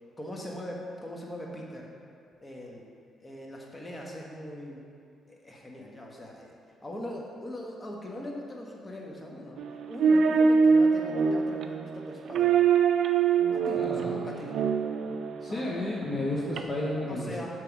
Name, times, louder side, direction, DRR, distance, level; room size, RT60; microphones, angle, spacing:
voice 1, 0.2-1.9 2.4-2.9 3.2-4.8 5.3-9.6 9.9-12.7 13.5-14.5 15.5-15.7 17.1-17.5, left 1 dB, 20° left, -2 dB, 1.3 m, -41 dB
sound 1, 9.6-15.5 16.6-16.7, right 5 dB, 70° right, 0.4 m, -24 dB
voice 2, 13.7-14.2 15.4-17.5, left 1 dB, 35° left, -5 dB, 1.0 m, -32 dB
6.9 x 3.4 x 5.9 m, 2.3 s
supercardioid pair, 65°, 0 cm